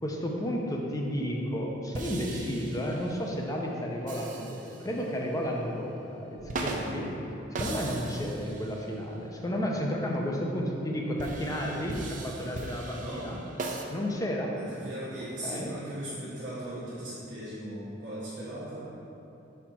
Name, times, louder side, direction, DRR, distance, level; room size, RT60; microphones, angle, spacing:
voice 1, 0.0-7.1 7.6-13.4 13.9-14.6 15.4-15.7, equal, 20° left, -1 dB, 0.6 m, -32 dB
sound 1, 1.9-3.4 4.1-5.2 6.4-7.0 7.6-8.9 11.2-13.8, right 2 dB, 45° right, 0.5 m, -38 dB
voice 2, 12.9-13.3 14.5-18.9, right 1 dB, 65° right, -11 dB, 1.4 m, -38 dB
4.4 x 4.3 x 5.5 m, 2.8 s
head